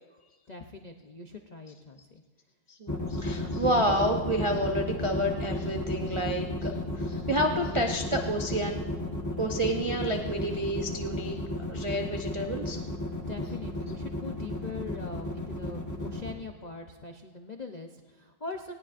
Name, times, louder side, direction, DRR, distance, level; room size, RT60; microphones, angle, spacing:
voice 1, 0.5-2.2 13.3-18.7, left 3 dB, 90° left, 4 dB, 0.3 m, -42 dB
voice 2, 2.7-8.8 9.4-11.4 11.7-12.8, right 1 dB, 35° right, 1 dB, 0.5 m, -29 dB
sound 1, 2.9-16.3, left 1 dB, 10° left, 1.1 m, -33 dB
19.5 x 18.0 x 2.6 m, 1.3 s
omnidirectional pair, 1.9 m